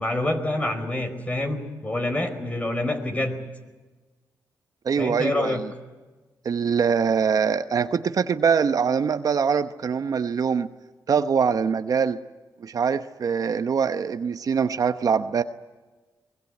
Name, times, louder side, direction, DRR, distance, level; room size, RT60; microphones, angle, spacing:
voice 1, 0.0-3.4 5.0-5.6, left 1 dB, 20° left, 7 dB, 4.6 m, -27 dB
voice 2, 4.8-5.7 6.4-10.7 11.1-12.2 12.6-15.4, right 6 dB, 60° right, 10 dB, 0.9 m, -23 dB
23.5 x 20.5 x 9.2 m, 1.2 s
cardioid pair, 75°, 7 cm